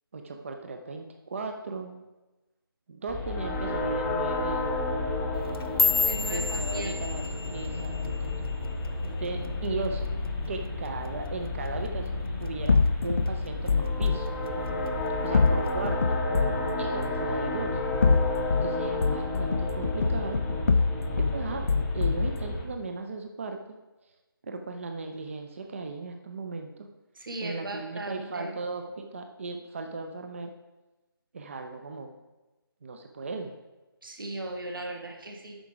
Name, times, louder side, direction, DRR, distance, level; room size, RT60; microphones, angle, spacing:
voice 1, 0.1-2.0 2.9-4.8 6.2-8.5 9.2-10.1 10.5-12.8 13.0-14.3 15.2-16.2 16.8-17.8 18.6-20.4 21.2-21.7 21.9-23.6 24.4-26.9 27.4-30.5 31.3-32.2 32.8-33.6, right 3 dB, 35° right, 5 dB, 0.5 m, -36 dB
sound 1, 3.1-22.6, left 2 dB, 5° left, 0.7 m, -31 dB
sound 2, 5.4-9.8 10.1-10.5 10.9-11.3 11.7-11.9 12.5-12.9 13.3-14.1 14.5-14.9 15.7-15.8, left 4 dB, 75° left, 0.7 m, -31 dB
voice 2, 6.0-7.0 27.1-28.6 34.0-35.6, right 1 dB, 60° right, 1 dB, 1.7 m, -37 dB
sound 3, 12.7-14.2 15.3-16.7 17.8-18.7 19.0-21.4 21.7-22.3, left 4 dB, 35° left, 0.3 m, -24 dB
8.9 x 5.9 x 4.8 m, 1.1 s
figure-of-eight pair, 160°, 13 cm